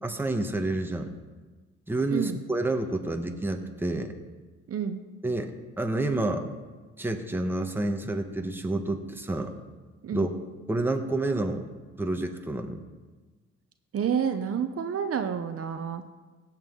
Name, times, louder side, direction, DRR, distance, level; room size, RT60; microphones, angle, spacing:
voice 1, 0.0-1.1 1.9-4.1 5.2-6.5 7.0-9.5 10.1-10.3 10.7-11.6 12.0-12.8, right 2 dB, 5° right, 5 dB, 1.0 m, -29 dB
voice 2, 4.7-5.0 10.0-10.3 13.9-16.0, right 7 dB, 50° right, 8 dB, 0.8 m, -29 dB
16.0 x 7.4 x 3.8 m, 1.3 s
cardioid pair, 90°, 30 cm